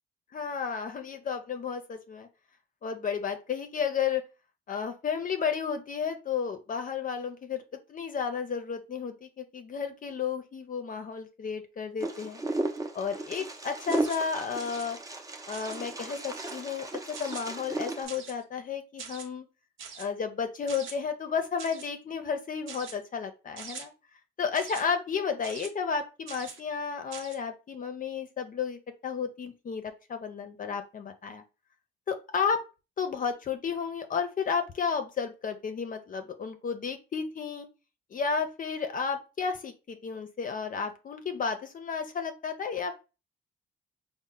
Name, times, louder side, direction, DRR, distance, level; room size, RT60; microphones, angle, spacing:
voice 1, 0.3-2.3 2.8-4.2 4.7-7.6 7.9-12.4 12.9-15.0 15.5-19.5 20.0-23.9 24.4-29.8 30.1-31.4 32.1-32.6 33.0-37.7 38.1-43.0, left 6 dB, 45° left, 6 dB, 0.5 m, -32 dB
Wind, 12.0-18.0, right 2 dB, 15° right, 0.7 m, -35 dB
sound 1, 13.9-14.3 14.6-14.9 15.5-15.8 16.3-16.6 17.1-17.5 18.1-18.4 19.0-19.3 19.8-20.1 20.7-21.0 21.6-21.9 22.7-23.0 23.6-23.8 24.5-24.8 25.4-25.7 26.3-26.6 27.1-27.4, right 6 dB, 80° right, 0.8 m, -44 dB
4.1 x 2.0 x 3.8 m, 0.31 s
cardioid pair, 90°, 20 cm